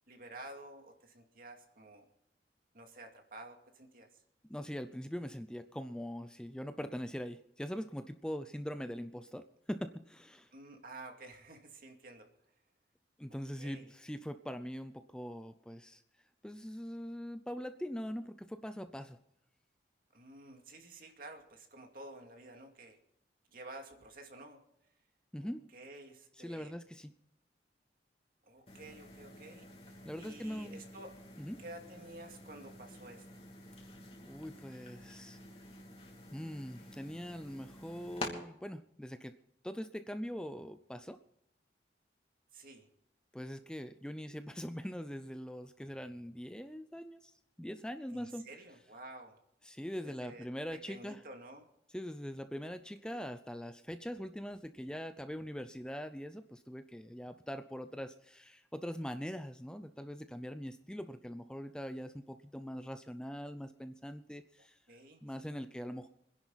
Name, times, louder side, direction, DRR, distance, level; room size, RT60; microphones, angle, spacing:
voice 1, 0.1-2.1 2.7-4.1 10.5-12.3 13.3-13.8 20.1-23.0 23.5-24.6 25.4-26.7 28.4-29.7 30.2-31.1 31.6-33.2 42.5-42.9 48.1-49.4 50.0-50.5 50.7-51.7 52.7-52.8 53.1-53.3 64.9-65.3, right 2 dB, 55° right, 4 dB, 2.4 m, -51 dB
voice 2, 4.5-10.5 13.2-16.0 16.4-19.2 25.3-25.6 26.3-27.1 30.0-30.8 31.4-31.6 34.2-35.4 36.3-39.3 39.6-41.2 43.3-48.5 49.6-51.2 51.9-64.8 65.2-66.1, equal, 5° left, 9 dB, 0.5 m, -42 dB
sound 1, 28.7-38.3, left 2 dB, 35° left, 2.9 m, -49 dB
25.5 x 10.5 x 4.0 m, 0.80 s
head